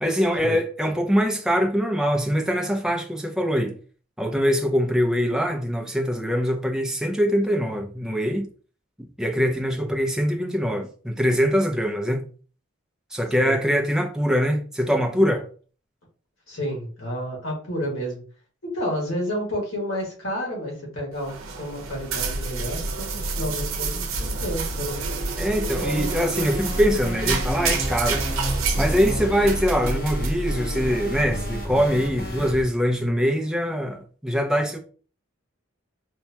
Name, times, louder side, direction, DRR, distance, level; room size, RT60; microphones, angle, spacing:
voice 1, 0.0-3.8 4.2-8.5 9.0-12.2 13.1-15.5 25.4-28.2 28.8-34.8, equal, 5° right, 0.4 m, -23 dB
voice 2, 16.5-18.2 18.6-25.0, equal, 75° left, 1.8 m, -30 dB
sound 1, 21.2-31.2, right 3 dB, 75° right, 0.7 m, -28 dB
sound 2, 25.8-32.6, equal, 45° left, 1.1 m, -31 dB
4.5 x 2.2 x 2.8 m
head